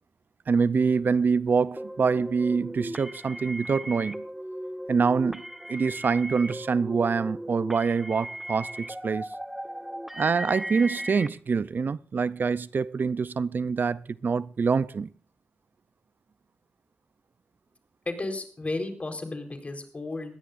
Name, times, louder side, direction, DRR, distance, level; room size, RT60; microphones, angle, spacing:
voice 1, 0.5-4.2 4.9-5.4 5.7-9.3 10.1-15.1, right 5 dB, 65° right, 0.5 m, -25 dB
sound 1, 1.8-11.3, right 1 dB, 5° right, 1.1 m, -37 dB
voice 2, 18.1-20.4, left 2 dB, 40° left, 4.2 m, -33 dB
20.5 x 16.0 x 2.6 m
cardioid pair, 65°, 4 cm